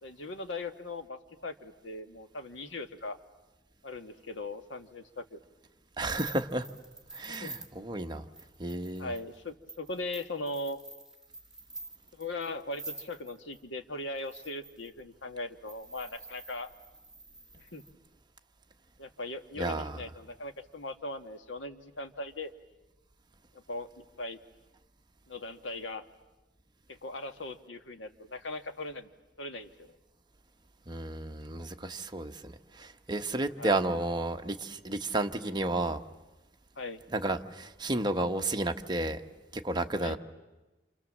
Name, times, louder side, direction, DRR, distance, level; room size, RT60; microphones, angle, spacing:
voice 1, 0.0-3.2 3.8-5.4 7.4-7.5 9.0-10.8 12.2-16.7 17.6-17.8 19.0-22.5 23.7-24.4 25.3-26.0 26.9-29.1 29.4-30.0 33.6-33.8 36.8-37.0 40.0-40.2, left 2 dB, 80° left, 8 dB, 1.6 m, -39 dB
sound 1, 6.0-13.6 14.2-15.0 15.7-17.9, right 2 dB, 5° right, 2.3 m, -47 dB
voice 2, 6.0-6.7 7.1-8.2 8.6-9.1 19.6-20.0 30.9-36.0 37.1-39.2 39.5-40.2, right 2 dB, 25° right, 5 dB, 1.1 m, -32 dB
28.5 x 27.0 x 7.4 m, 1.1 s
head